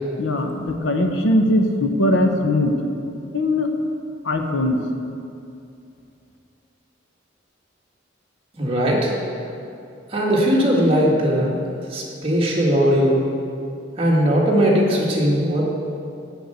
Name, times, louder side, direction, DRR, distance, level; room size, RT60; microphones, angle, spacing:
voice 1, 0.2-2.7 3.3-3.7 4.2-4.8, left 1 dB, 90° left, 4 dB, 0.9 m, -20 dB
voice 2, 8.6-9.1 10.1-11.6 11.9-13.2 14.0-15.6, equal, 30° right, -4 dB, 1.7 m, -19 dB
8.2 x 6.5 x 7.8 m, 2.6 s
head